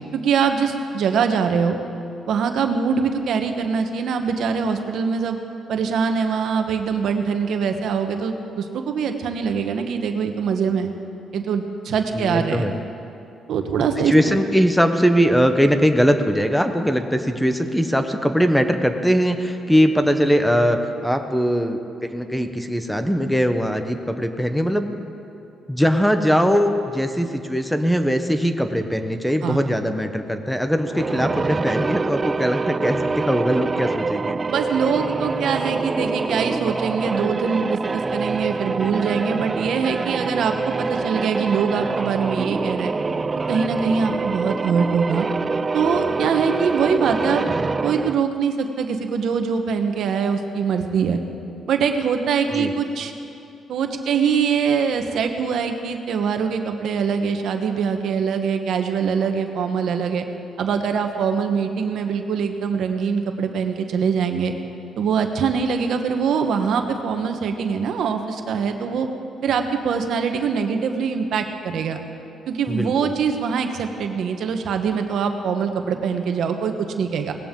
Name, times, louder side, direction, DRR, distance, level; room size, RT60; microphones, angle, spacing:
voice 1, 0.1-1.8 2.3-5.4 5.7-10.9 11.3-12.7 13.5-14.4 29.4-29.6 34.5-42.9 43.5-45.3 45.7-47.4 47.8-51.2 51.7-53.1 53.7-60.2 60.6-64.5 65.0-69.1 69.4-72.0 72.5-77.3, right 6 dB, 70° right, 6 dB, 1.1 m, -23 dB
voice 2, 12.1-12.8 14.1-20.8 21.0-25.0 25.7-34.4 52.5-52.7 72.7-73.1, equal, ahead, 7 dB, 1.0 m, -20 dB
sound 1, 30.8-48.3, right 4 dB, 30° right, 0.3 m, -25 dB
18.5 x 16.0 x 3.8 m, 2.7 s
cardioid pair, 90°, 0 cm